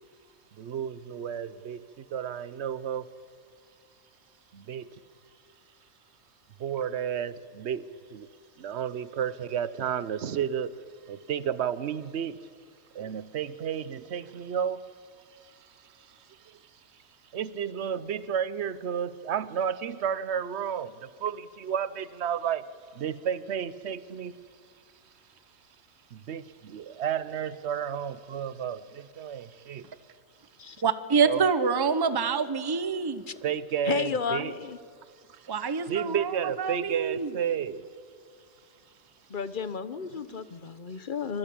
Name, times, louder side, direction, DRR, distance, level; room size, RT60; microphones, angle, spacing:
voice 1, 0.5-3.1 4.5-5.0 6.6-8.3 8.6-10.8 11.1-12.4 12.9-14.9 15.4-16.6 17.3-22.7 22.9-24.4 26.1-29.9 31.2-31.4 33.4-34.5 35.3-35.5 35.9-37.8 40.1-40.4, right 8 dB, 55° right, 1.0 m, -32 dB
voice 2, 30.8-33.2 35.5-37.4, right 5 dB, 20° right, 0.7 m, -26 dB
voice 3, 33.9-34.8 39.3-41.4, left 6 dB, 40° left, 0.8 m, -32 dB
25.0 x 23.0 x 8.6 m
omnidirectional pair, 1.5 m